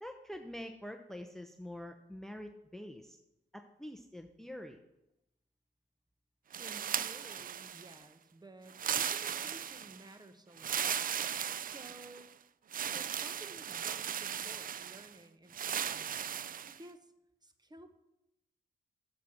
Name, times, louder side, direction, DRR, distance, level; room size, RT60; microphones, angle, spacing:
voice 1, 0.0-3.2 3.5-4.8, left 1 dB, ahead, 6 dB, 0.8 m, -46 dB
sound 1, 6.5-8.0 8.7-10.0 10.6-12.2 12.7-15.1 15.5-16.8, right 8 dB, 45° right, 0.4 m, -37 dB
voice 2, 6.6-10.9 11.6-12.3 12.9-16.2 16.7-17.1 17.4-17.9, right 1 dB, 20° right, 9 dB, 1.1 m, -54 dB
7.0 x 6.4 x 6.0 m, 0.90 s
supercardioid pair, 45°, 19 cm